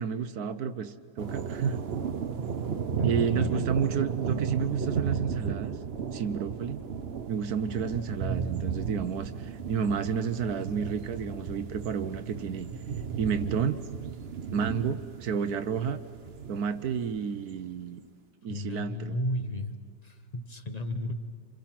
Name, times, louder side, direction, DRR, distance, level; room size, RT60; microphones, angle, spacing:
voice 1, 0.0-1.8 3.0-5.8 6.1-6.8 7.3-12.7 13.2-13.8 14.5-16.0 16.5-18.0 18.4-19.2, right 7 dB, 65° right, 11 dB, 1.2 m, -31 dB
sound 1, 1.2-17.3, right 6 dB, 45° right, 0.9 m, -34 dB
voice 2, 3.0-3.6 18.5-19.8 20.0-21.1, left 1 dB, 30° left, 8 dB, 0.8 m, -34 dB
27.5 x 27.0 x 5.9 m, 2.2 s
omnidirectional pair, 1.9 m